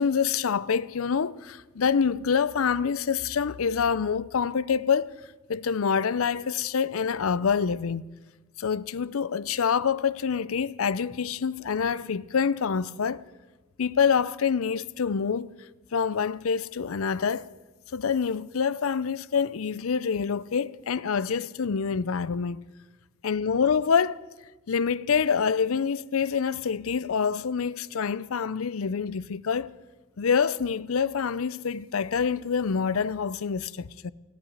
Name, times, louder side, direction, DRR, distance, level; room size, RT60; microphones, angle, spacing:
voice 1, 0.0-5.1 5.5-8.1 8.6-13.2 13.8-15.5 15.9-17.5 17.9-22.6 23.2-24.2 24.7-29.7 30.2-34.1, left 6 dB, 75° left, 0.5 m, -26 dB
17.0 x 8.7 x 9.7 m
head